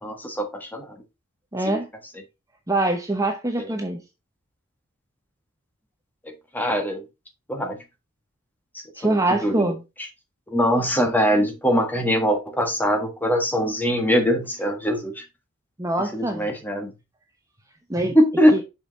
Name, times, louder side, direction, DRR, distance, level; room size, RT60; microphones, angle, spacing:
voice 1, 0.0-1.0 1.6-1.8 6.5-7.0 7.5-7.8 8.7-9.2 9.4-9.7 10.5-15.2 16.1-16.9 18.1-18.6, equal, 10° left, 1.6 m, -22 dB
voice 2, 1.5-1.9 2.7-4.0 9.0-9.8 15.8-16.5 17.9-18.2 18.5-18.6, right 2 dB, 15° right, 0.9 m, -24 dB
7.0 x 5.4 x 4.0 m
head